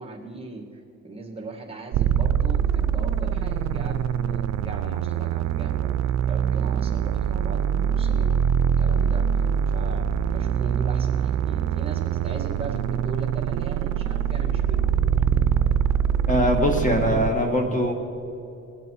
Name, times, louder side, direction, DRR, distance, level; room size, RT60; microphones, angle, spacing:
voice 1, 0.0-5.9 6.2-8.4 8.8-15.2, right 3 dB, 20° right, 1 dB, 2.2 m, -38 dB
sound 1, 1.9-17.3, right 8 dB, 60° right, 0.5 m, -24 dB
voice 2, 16.3-17.9, equal, 25° left, 3 dB, 1.7 m, -22 dB
21.0 x 8.1 x 4.7 m, 2.8 s
cardioid pair, 90°, 30 cm